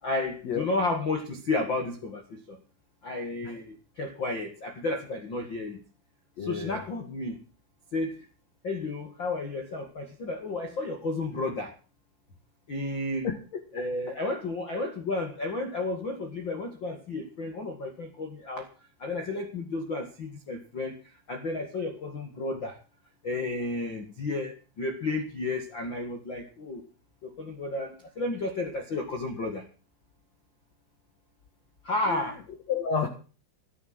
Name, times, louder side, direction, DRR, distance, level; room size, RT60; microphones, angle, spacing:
voice 1, 0.0-2.6 3.0-5.8 6.4-7.4 7.9-8.2 8.6-11.7 12.7-13.3 13.7-18.7 19.0-22.8 23.2-26.8 27.2-29.6 31.8-32.4, left 2 dB, 85° left, 5 dB, 1.0 m, -32 dB
voice 2, 6.4-6.9 13.2-13.4 14.1-14.2 32.1-32.3 32.7-33.1, left 6 dB, 55° left, 5 dB, 1.9 m, -30 dB
14.0 x 11.0 x 6.2 m, 0.37 s
omnidirectional pair, 5.6 m